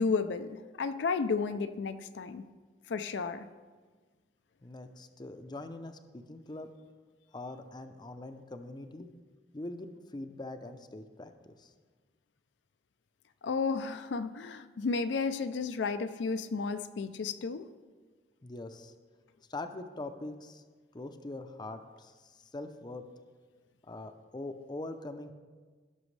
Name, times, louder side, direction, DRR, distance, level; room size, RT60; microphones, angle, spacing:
voice 1, 0.0-2.5 2.9-3.5 13.4-17.7, left 4 dB, 80° left, 10 dB, 0.4 m, -32 dB
voice 2, 4.6-6.7 7.3-9.1 9.5-11.7 18.4-18.9 19.5-20.6 20.9-23.0 23.8-25.3, left 2 dB, 25° left, 8 dB, 0.5 m, -43 dB
16.5 x 6.1 x 3.2 m, 1.4 s
head